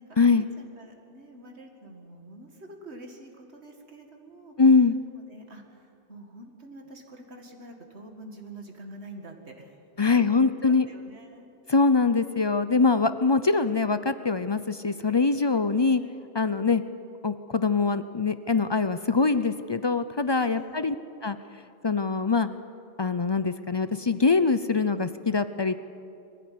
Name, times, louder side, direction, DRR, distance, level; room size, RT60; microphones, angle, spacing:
voice 1, 0.0-4.5 5.1-10.5 10.9-11.5 15.7-16.1 20.4-20.8, right 1 dB, 70° right, 3 dB, 2.3 m, -47 dB
voice 2, 4.6-4.9 10.0-10.9 11.7-16.0 16.3-16.8 17.2-20.9 21.2-21.4 21.8-22.5 23.0-25.8, left 4 dB, 35° left, 12 dB, 0.4 m, -23 dB
22.0 x 15.5 x 9.4 m, 2.7 s
omnidirectional pair, 1.2 m